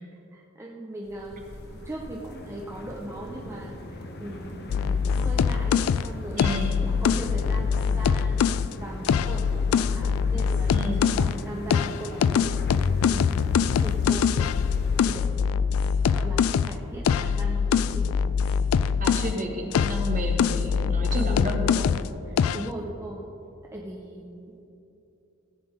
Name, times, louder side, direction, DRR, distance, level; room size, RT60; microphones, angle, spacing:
voice 1, 0.3-1.5 1.7-6.5 6.8-8.4 8.8-14.3 14.9-15.5 16.1-16.4 16.6-18.2 21.1-21.5 22.3-23.3 23.7-24.7, right 1 dB, 15° right, -2 dB, 0.7 m, -39 dB
sound 1, 1.0-15.1, left 1 dB, 50° left, 1.0 m, -40 dB
sound 2, 1.3-17.8, equal, 70° right, 1.3 m, -49 dB
sound 3, 4.7-8.7 9.1-11.4 11.7-19.4 19.7-22.1 22.4-22.7, left 6 dB, 80° left, 0.3 m, -23 dB
voice 2, 6.3-6.8 10.7-11.1 19.0-21.9, right 1 dB, 40° right, 1 dB, 1.6 m, -31 dB
16.5 x 8.3 x 3.6 m, 2.8 s
head